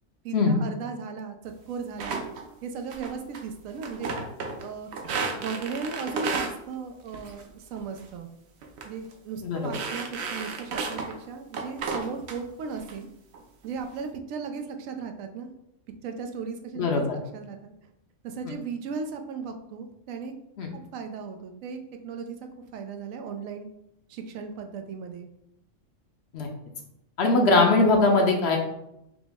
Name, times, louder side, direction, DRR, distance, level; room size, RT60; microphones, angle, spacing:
voice 1, 0.2-2.2 2.6-4.1 4.6-4.9 5.3-8.3 8.8-13.1 13.6-15.5 16.0-17.0 17.3-17.7 18.2-20.3 20.7-22.4 22.7-23.7 24.1-25.3, right 5 dB, 90° right, 5 dB, 1.0 m, -36 dB
sound 1, 2.0-2.4 2.9-3.4 3.7-4.6 4.9-6.5 7.1-7.5 7.8-8.1 8.6-8.8 9.1-9.2 9.6-11.1 11.5-12.4 12.8-12.9 13.3-13.8, right 4 dB, 65° right, 0.8 m, -33 dB
voice 2, 9.4-9.8 16.8-17.2 20.6-20.7 26.3-26.5 27.2-28.6, left 3 dB, 60° left, 2 dB, 0.9 m, -21 dB
5.1 x 2.0 x 3.4 m, 0.82 s
omnidirectional pair, 1.3 m